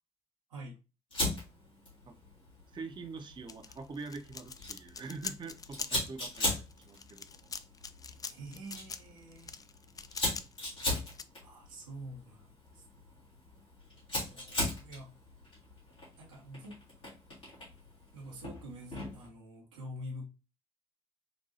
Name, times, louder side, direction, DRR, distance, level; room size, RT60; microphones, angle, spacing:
Fire, 1.1-19.3, left 1 dB, 90° left, 1.8 m, -40 dB
voice 1, 2.7-7.5, right 4 dB, 30° right, 6 dB, 0.6 m, -44 dB
sound 1, 3.5-11.2, left 5 dB, 25° left, 0.3 m, -44 dB
voice 2, 8.3-9.5 11.4-12.8 14.3-15.1 16.2-16.8 18.1-20.3, equal, 80° right, -1 dB, 1.0 m, -46 dB
4.0 x 2.6 x 2.6 m, 0.29 s
figure-of-eight pair, 40°, 16 cm